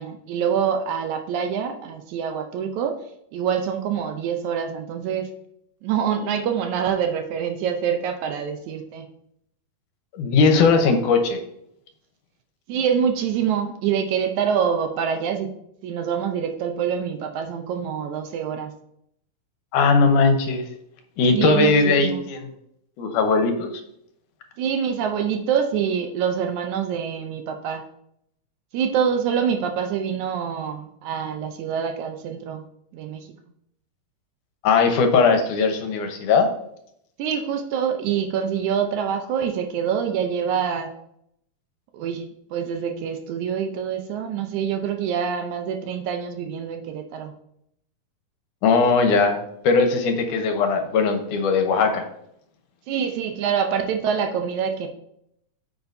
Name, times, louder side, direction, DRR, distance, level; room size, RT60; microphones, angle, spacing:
voice 1, 0.0-3.0 3.3-5.3 5.8-9.1 12.7-15.5 15.8-18.7 21.3-22.2 24.6-27.8 28.7-32.6 32.9-33.3 37.2-40.9 41.9-47.3 52.9-54.9, right 7 dB, 75° right, 5 dB, 1.9 m, -25 dB
voice 2, 10.1-11.4 19.7-20.6 21.2-22.5 23.0-23.7 34.6-36.5 48.6-49.4 49.6-52.0, left 4 dB, 75° left, 5 dB, 2.4 m, -19 dB
9.4 x 7.0 x 2.7 m, 0.74 s
omnidirectional pair, 3.7 m